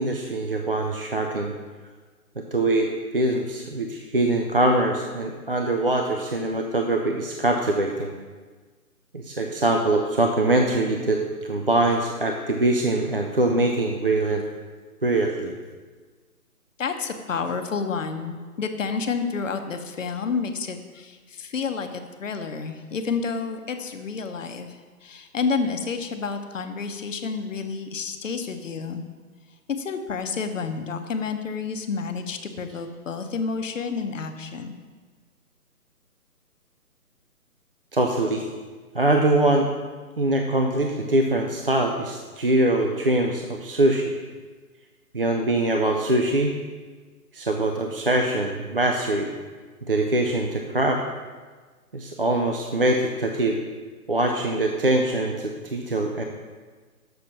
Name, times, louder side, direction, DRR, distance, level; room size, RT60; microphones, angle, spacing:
voice 1, 0.0-1.5 2.4-8.2 9.1-14.4 15.0-15.5 37.9-38.5 38.9-39.7 40.2-44.1 45.1-46.5 47.3-49.3 49.8-51.0 51.9-53.6 54.1-56.2, right 2 dB, 40° right, 2 dB, 0.4 m, -23 dB
voice 2, 16.8-29.0 29.7-34.7, left 5 dB, 55° left, 7 dB, 0.8 m, -30 dB
7.0 x 6.0 x 5.6 m, 1.4 s
hypercardioid pair, 160°, 46 cm